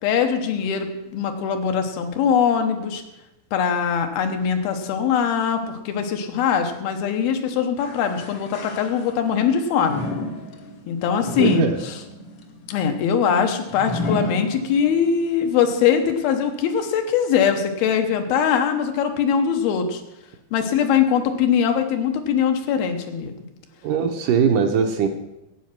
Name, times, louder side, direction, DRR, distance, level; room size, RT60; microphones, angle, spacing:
voice 1, 0.0-3.0 3.5-10.0 10.9-12.0 12.7-20.0 20.5-23.3, left 7 dB, 85° left, 5 dB, 3.0 m, -22 dB
sound 1, 7.8-9.4 9.8-15.1 15.6-15.7 16.5-16.6, left 2 dB, 70° left, 1.1 m, -31 dB
voice 2, 11.4-11.8 23.8-25.1, right 6 dB, 75° right, 5 dB, 2.1 m, -20 dB
12.0 x 8.7 x 5.9 m, 0.91 s
omnidirectional pair, 4.3 m